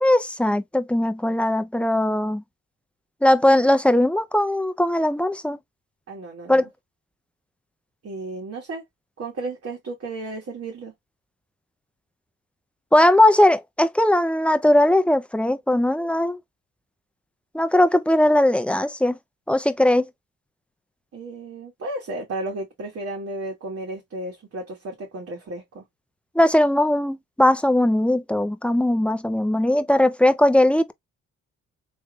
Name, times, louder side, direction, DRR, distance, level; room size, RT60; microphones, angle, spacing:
voice 1, 0.0-2.4 3.2-5.6 6.5-6.7 12.9-16.4 17.5-19.2 19.5-20.1 26.4-30.9, left 1 dB, 5° left, 0.4 m, -19 dB
voice 2, 6.1-6.7 8.0-8.8 9.2-10.9 21.1-25.8, right 2 dB, 50° right, 1.6 m, -33 dB
3.5 x 3.1 x 2.3 m
cardioid pair, 90°, 30 cm